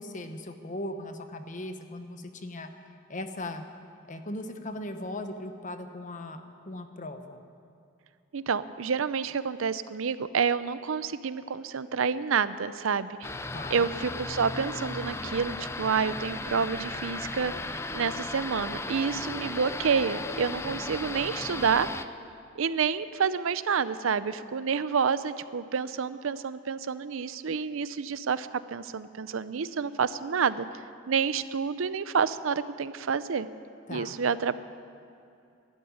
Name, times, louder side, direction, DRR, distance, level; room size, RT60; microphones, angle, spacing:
voice 1, 0.0-3.6 4.0-7.4 13.5-13.9 33.9-34.2, left 1 dB, 40° left, 7 dB, 1.0 m, -38 dB
voice 2, 8.3-13.3 13.7-21.9 22.6-30.7 31.1-33.5 33.9-34.6, right 6 dB, 80° right, 15 dB, 0.5 m, -29 dB
sound 1, 13.2-22.1, left 2 dB, 15° left, 0.4 m, -36 dB
12.5 x 12.0 x 9.5 m, 2.5 s
head